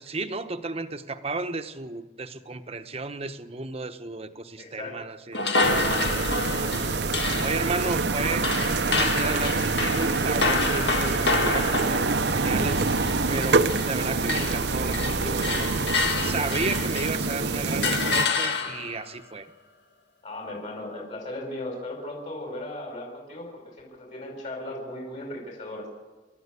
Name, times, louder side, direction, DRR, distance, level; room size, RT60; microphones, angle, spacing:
voice 1, 0.0-6.0 7.4-12.8 13.3-15.7 16.2-19.5, right 3 dB, 35° right, 9 dB, 1.1 m, -33 dB
voice 2, 4.6-4.9 20.2-25.9, left 1 dB, 40° left, 0 dB, 5.6 m, -37 dB
sound 1, 5.3-14.0 14.2-17.3 17.8-19.0, left 3 dB, 65° left, 2.0 m, -28 dB
sound 2, 5.6-18.3, right 3 dB, 65° right, 0.9 m, -26 dB
29.0 x 13.0 x 8.4 m, 1.2 s
head